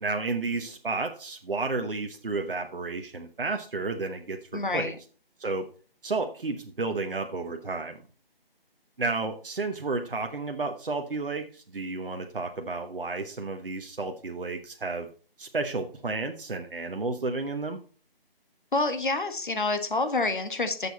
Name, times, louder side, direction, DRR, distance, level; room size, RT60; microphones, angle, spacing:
voice 1, 0.0-4.9 5.4-5.7 6.0-8.0 9.0-15.1 15.4-17.8, right 3 dB, 65° right, 5 dB, 1.0 m, -32 dB
voice 2, 4.5-5.0 18.7-20.9, left 3 dB, 55° left, 8 dB, 1.4 m, -27 dB
9.0 x 7.0 x 4.0 m, 0.38 s
figure-of-eight pair, 155°, 30 cm